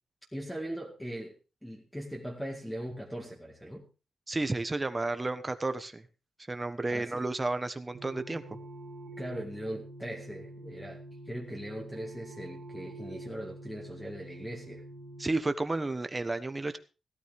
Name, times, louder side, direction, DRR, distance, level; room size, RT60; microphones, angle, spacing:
voice 1, 0.3-1.4 1.6-3.9 6.9-7.2 9.2-11.0 11.3-14.8, right 1 dB, 5° left, 0 dB, 2.0 m, -40 dB
voice 2, 4.3-6.0 6.5-8.4 15.2-16.8, right 2 dB, 20° right, 10 dB, 1.2 m, -32 dB
sound 1, 7.9-15.3, right 1 dB, 75° right, 3.1 m, -46 dB
17.0 x 13.0 x 3.6 m, 0.33 s
wide cardioid pair, 135°, 0 cm